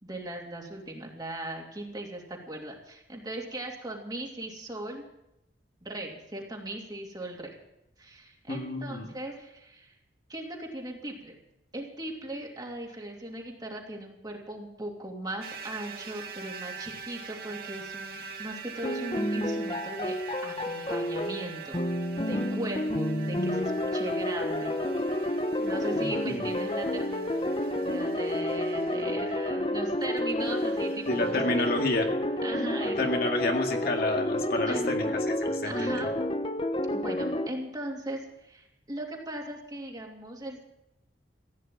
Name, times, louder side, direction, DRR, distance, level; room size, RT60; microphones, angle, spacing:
voice 1, 0.0-5.0 5.8-7.6 8.0-9.9 10.3-11.3 11.7-20.2 20.4-21.8 22.2-24.8 25.6-32.1 32.4-33.0 34.7-35.1 35.7-36.3 36.9-40.7, right 1 dB, 20° right, 0 dB, 2.8 m, -38 dB
voice 2, 8.5-9.1 25.9-26.5 31.1-32.1 33.0-35.0 35.4-35.9, left 2 dB, 55° left, 2 dB, 2.1 m, -29 dB
sound 1, 15.4-32.5, right 5 dB, 55° right, 2.1 m, -44 dB
sound 2, 18.8-37.5, left 1 dB, 30° left, 0.9 m, -30 dB
16.0 x 10.0 x 8.9 m, 0.87 s
head